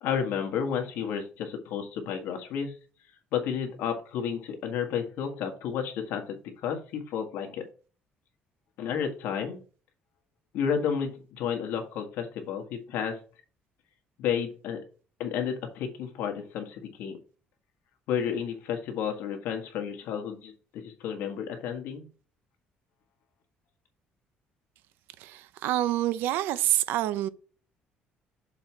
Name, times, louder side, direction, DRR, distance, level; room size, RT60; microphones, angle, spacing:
voice 1, 0.0-2.7 3.3-7.6 8.8-9.6 10.5-13.2 14.2-14.8 15.2-17.2 18.1-22.1, left 7 dB, 75° left, 1.6 m, -31 dB
voice 2, 25.2-27.3, right 13 dB, 85° right, 0.6 m, -27 dB
6.9 x 4.2 x 4.5 m
cardioid pair, 155°, 4 cm